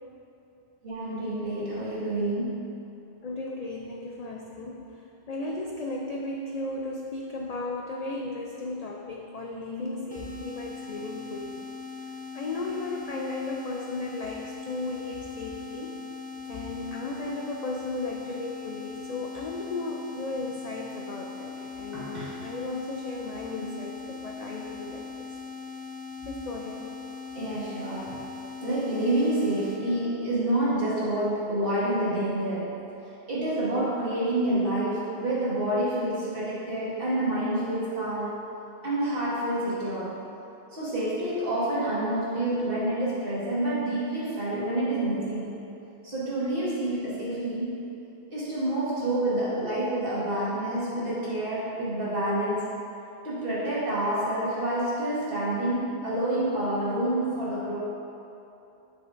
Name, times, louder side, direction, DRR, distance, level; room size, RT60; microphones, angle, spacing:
voice 1, 0.8-2.6 21.6-21.7 21.9-22.4 27.3-28.2 28.6-32.8 33.3-38.5 38.8-40.2 40.7-45.6 46.0-47.8 48.3-52.7 53.2-57.8, right 1 dB, 50° right, -9 dB, 1.8 m, -28 dB
voice 2, 3.2-4.8 5.3-11.7 12.3-16.0 16.5-25.3 26.2-26.9, left 2 dB, 70° left, -1 dB, 0.3 m, -35 dB
sound 1, 10.1-29.8, left 5 dB, 10° left, 0.5 m, -40 dB
7.7 x 6.1 x 2.6 m, 2.8 s
omnidirectional pair, 1.2 m